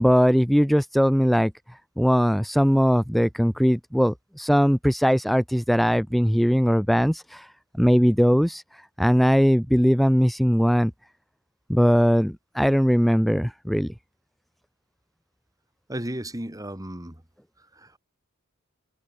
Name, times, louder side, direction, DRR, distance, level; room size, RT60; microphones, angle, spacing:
voice 1, 0.0-1.5 2.0-7.5 7.8-8.6 9.0-10.9 11.7-13.9, equal, ahead, 1.0 m, -20 dB
voice 2, 15.9-17.2 17.8-18.0, right 1 dB, 15° right, 3.8 m, -34 dB
head